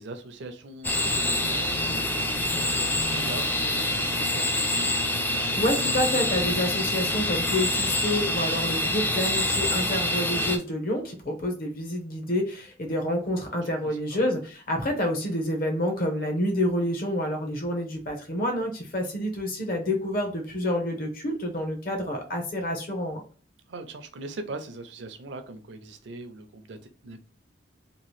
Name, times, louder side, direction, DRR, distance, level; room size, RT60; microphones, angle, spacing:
voice 1, 0.0-4.9 13.5-14.3 23.7-27.2, right 2 dB, 65° right, 0.5 m, -41 dB
sound 1, 0.8-10.6, left 1 dB, 10° left, 0.3 m, -26 dB
voice 2, 5.6-23.2, left 1 dB, 50° left, 0.8 m, -28 dB
2.9 x 2.4 x 3.1 m
head